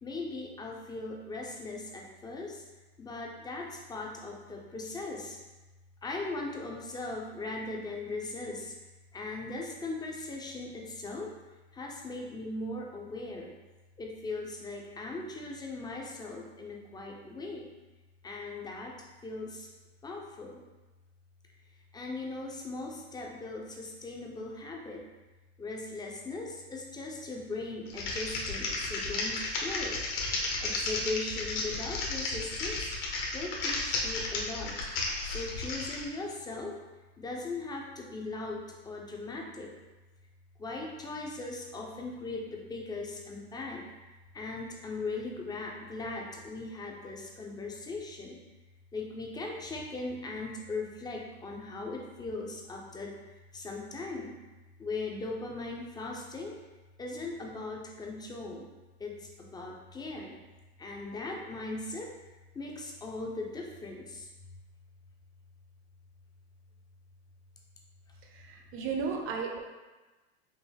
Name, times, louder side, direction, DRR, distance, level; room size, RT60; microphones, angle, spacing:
voice 1, 0.0-2.6 3.0-5.4 6.0-8.7 9.1-11.3 11.7-13.5 14.0-17.7 18.2-19.0 19.2-19.7 20.0-20.6 21.9-25.1 25.6-30.0 30.6-32.9 33.3-34.8 35.2-36.8 37.2-39.7 40.6-43.8 44.3-48.4 48.9-54.4 54.8-56.6 57.0-58.7 59.0-60.4 60.8-62.1 62.5-64.3 68.7-68.8, left 3 dB, 10° left, 0 dB, 0.5 m, -39 dB
Typing, 27.9-36.0, left 3 dB, 60° left, 1.1 m, -33 dB
voice 2, 68.3-69.6, right 5 dB, 40° right, 2 dB, 0.7 m, -34 dB
5.4 x 2.0 x 3.3 m, 1.2 s
hypercardioid pair, 115°, 33 cm